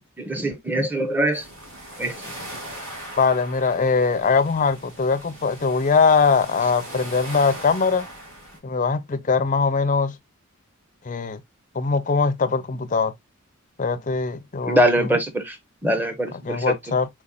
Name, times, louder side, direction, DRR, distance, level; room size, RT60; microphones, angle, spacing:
voice 1, 0.2-1.4 2.0-2.2 14.7-15.6 15.8-16.7, right 1 dB, 10° right, 0.8 m, -22 dB
sound 1, 1.3-8.6, right 1 dB, 60° right, 2.4 m, -39 dB
voice 2, 3.2-8.1 8.6-10.2 11.1-11.4 11.8-13.1 13.8-15.1 16.4-17.1, left 5 dB, 35° left, 0.5 m, -21 dB
4.5 x 4.1 x 2.2 m
head